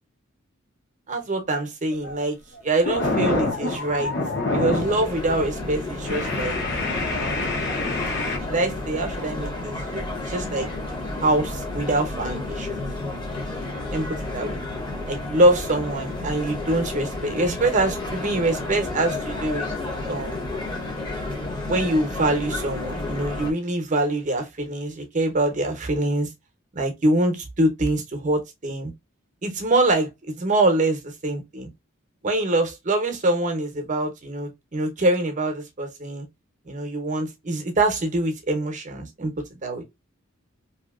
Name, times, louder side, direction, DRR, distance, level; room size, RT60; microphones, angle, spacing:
voice 1, 1.1-2.4 2.6-4.1 4.5-6.6 7.1-7.6 8.5-10.7 11.2-12.8 13.9-14.1 14.3-14.6 15.1-19.7 20.1-20.4 21.7-26.3 26.7-28.9 29.4-30.1 30.4-31.7 32.2-36.3 36.7-39.8, right 2 dB, 40° right, 0.7 m, -24 dB
sound 1, 1.9-2.2 2.6-5.0 5.4-5.6 6.0-8.4, left 2 dB, 55° left, 0.8 m, -26 dB
sound 2, 4.7-23.5, left 2 dB, 20° left, 0.8 m, -31 dB
2.7 x 2.7 x 2.3 m
head